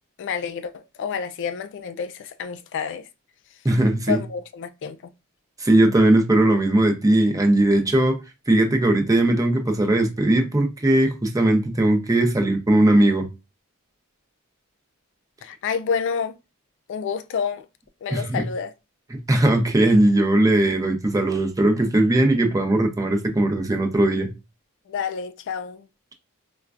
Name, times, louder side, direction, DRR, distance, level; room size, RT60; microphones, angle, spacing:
voice 1, 0.2-3.1 4.1-5.1 15.4-16.3 16.9-17.6 18.0-18.7 24.9-25.9, left 6 dB, 55° left, 0.3 m, -29 dB
voice 2, 3.6-4.2 5.6-8.2 8.5-13.3 18.1-18.5 19.1-24.3, right 1 dB, 15° right, 0.6 m, -19 dB
4.3 x 2.3 x 2.4 m
head